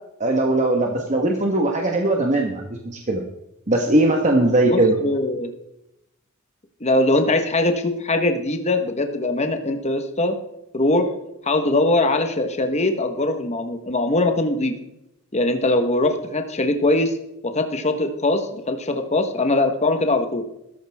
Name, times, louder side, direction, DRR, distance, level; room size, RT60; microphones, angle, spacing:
voice 1, 0.2-3.2 3.7-4.9, right 2 dB, 35° right, 1 dB, 1.4 m, -20 dB
voice 2, 4.7-5.5 6.8-10.3 10.7-11.1 11.4-14.7 15.3-17.1 17.4-20.4, left 2 dB, 30° left, 6 dB, 1.3 m, -21 dB
15.5 x 14.0 x 3.6 m, 0.87 s
head